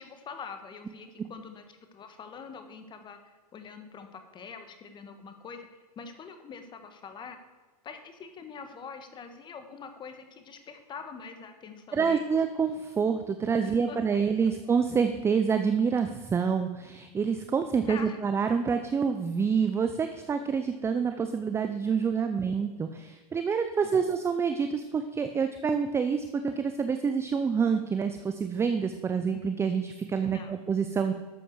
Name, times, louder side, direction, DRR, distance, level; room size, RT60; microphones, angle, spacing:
voice 1, 0.0-1.6 1.9-7.4 7.8-12.2 13.6-14.2 17.9-18.2 23.8-23.9 30.2-30.5, left 5 dB, 25° left, 7 dB, 1.5 m, -44 dB
voice 2, 11.9-31.1, right 6 dB, 15° right, 8 dB, 0.6 m, -27 dB
12.5 x 7.8 x 4.7 m, 1.3 s
hypercardioid pair, 125°, 20 cm